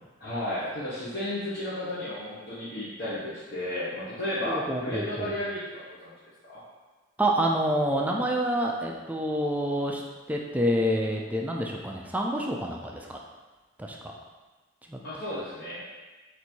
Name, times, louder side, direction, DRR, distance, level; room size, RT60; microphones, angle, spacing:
voice 1, 0.2-6.1 6.4-6.6 15.0-15.8, left 1 dB, 60° left, -12 dB, 1.1 m, -33 dB
voice 2, 4.5-5.3 7.2-10.0 10.3-13.2 13.8-14.0 14.9-15.0, equal, 10° right, 0 dB, 0.3 m, -27 dB
4.1 x 2.6 x 4.5 m, 1.2 s
head